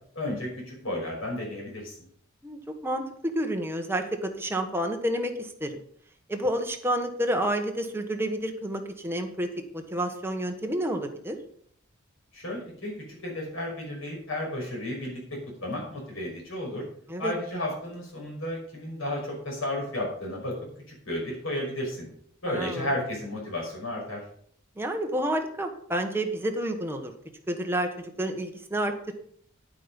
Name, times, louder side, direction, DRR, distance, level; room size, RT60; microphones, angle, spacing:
voice 1, 0.1-2.0 12.3-12.9 13.2-16.8 17.2-20.6 20.9-22.1 22.4-24.2, left 1 dB, 70° left, -2 dB, 5.7 m, -33 dB
voice 2, 2.4-5.8 6.3-11.4 17.1-17.3 22.5-22.9 24.8-27.1 27.5-29.1, right 1 dB, 10° right, 4 dB, 1.4 m, -30 dB
9.6 x 8.8 x 5.3 m, 0.62 s
head